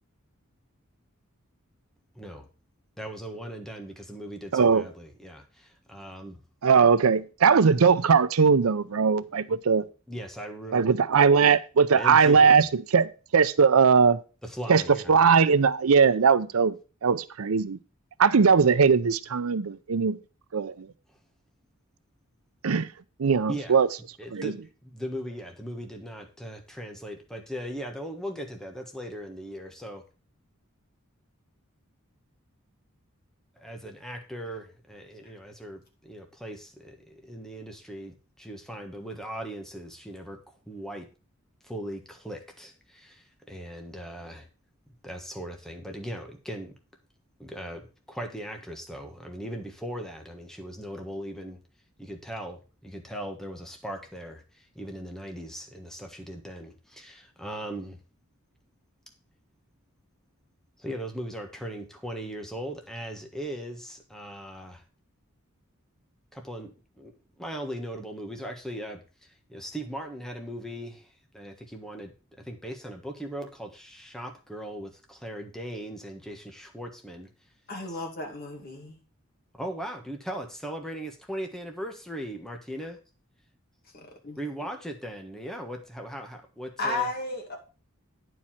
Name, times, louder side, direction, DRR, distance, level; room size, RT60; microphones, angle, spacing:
voice 1, 2.1-2.5 3.0-6.4 10.1-10.9 11.9-12.6 14.4-15.2 23.5-23.8 24.2-30.0 33.6-41.1 41.6-44.5 45.0-46.7 47.4-51.6 52.0-58.0 60.8-64.8 66.3-77.3 77.9-78.0 79.5-83.0 84.4-87.1, equal, ahead, 1.4 m, -39 dB
voice 2, 4.5-4.8 6.6-9.8 10.7-12.7 12.9-14.2 14.7-14.8 15.1-16.7 17.0-17.8 18.2-20.2 20.5-20.9 22.6-22.9 23.2-23.9 24.3-24.5, right 5 dB, 90° right, 0.6 m, -20 dB
voice 3, 77.7-79.0 83.9-84.7 86.8-87.6, left 2 dB, 50° left, 2.5 m, -34 dB
9.7 x 4.7 x 5.7 m
head